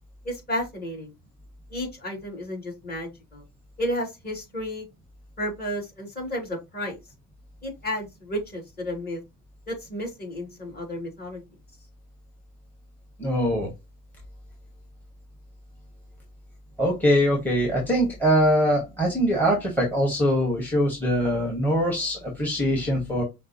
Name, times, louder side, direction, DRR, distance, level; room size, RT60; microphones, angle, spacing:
voice 1, 0.2-1.1 1.7-3.4 3.8-4.8 5.4-7.0 7.6-9.2 9.7-11.4, equal, 20° left, 0 dB, 2.7 m, -32 dB
voice 2, 13.2-13.7 16.8-23.2, equal, 5° left, 0 dB, 1.6 m, -23 dB
5.8 x 2.3 x 3.0 m, 0.23 s
hypercardioid pair, 65°, 46 cm